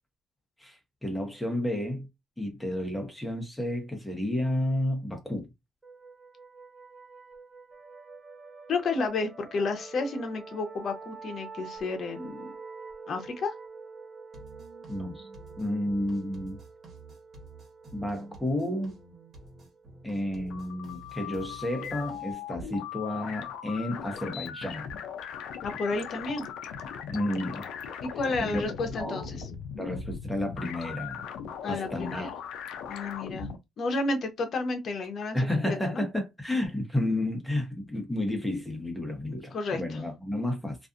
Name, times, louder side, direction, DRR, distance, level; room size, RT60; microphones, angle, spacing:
voice 1, 0.6-2.1 2.4-5.5 14.9-15.3 15.6-16.6 17.9-18.9 20.0-24.9 27.1-27.7 28.4-28.6 28.9-31.2 31.7-32.3 35.3-40.8, left 1 dB, 10° left, 1.0 m, -31 dB
sound 1, 5.8-21.2, right 4 dB, 25° right, 0.9 m, -47 dB
voice 2, 8.7-12.5 13.1-13.5 25.6-26.5 28.0-29.4 31.6-32.3 32.9-33.5 33.8-35.4 35.7-36.0 39.3-40.0, left 3 dB, 55° left, 0.8 m, -31 dB
sound 2, 14.3-22.3, right 2 dB, 55° right, 1.2 m, -50 dB
sound 3, 20.3-33.6, left 7 dB, 90° left, 0.5 m, -39 dB
2.5 x 2.4 x 2.5 m
cardioid pair, 90°, 0 cm